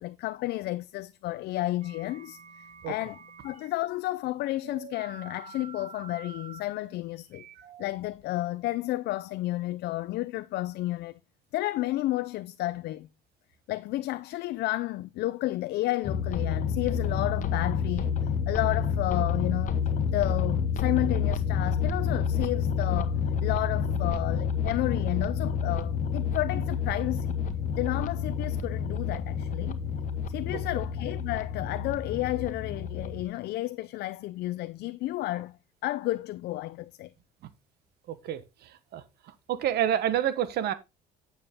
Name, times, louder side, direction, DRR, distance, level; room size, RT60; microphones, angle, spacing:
voice 1, 0.0-7.4 7.8-11.2 11.5-13.1 13.7-18.2 18.5-19.8 20.1-27.4 27.8-29.8 30.3-35.6 35.8-37.1, left 16 dB, 75° left, 0.5 m, -32 dB
sound 1, 1.8-3.7 4.6-8.6, right 5 dB, 45° right, 2.8 m, -48 dB
sound 2, 16.0-33.2, left 6 dB, 50° left, 1.3 m, -29 dB
voice 2, 38.1-39.0 39.5-40.7, right 10 dB, 70° right, 1.2 m, -28 dB
8.9 x 7.0 x 3.6 m
cardioid pair, 110°, 17 cm